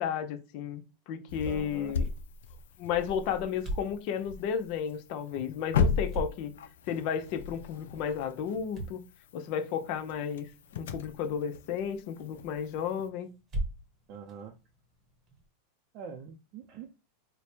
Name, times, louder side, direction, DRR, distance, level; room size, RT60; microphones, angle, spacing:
voice 1, 0.0-2.1 2.8-6.5 6.9-9.0 9.3-10.5 10.7-13.3, left 8 dB, 50° left, 0.6 m, -33 dB
sound 1, 1.3-13.1, left 5 dB, 90° left, 0.4 m, -37 dB
voice 2, 1.4-2.0 14.1-14.5 15.9-16.9, right 6 dB, 45° right, 0.5 m, -44 dB
sound 2, 1.9-15.5, right 1 dB, 30° right, 0.9 m, -44 dB
3.2 x 2.2 x 4.3 m
supercardioid pair, 150°, 0 cm